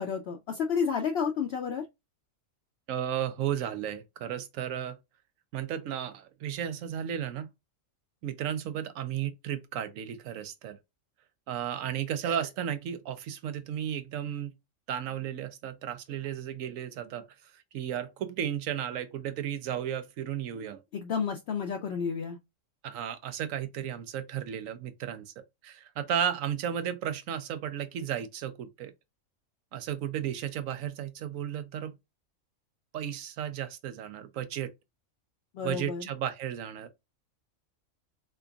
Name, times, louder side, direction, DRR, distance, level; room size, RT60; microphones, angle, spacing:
voice 1, 0.0-1.8 20.9-22.4 35.5-36.0, left 6 dB, 65° left, 0.7 m, -31 dB
voice 2, 2.9-5.0 5.5-7.5 8.2-10.8 11.5-14.5 14.9-17.3 17.7-20.8 22.8-25.2 25.6-28.9 29.7-31.9 32.9-34.7 35.6-36.9, right 9 dB, 85° right, 1.0 m, -34 dB
3.8 x 3.4 x 2.3 m
omnidirectional pair, 1.4 m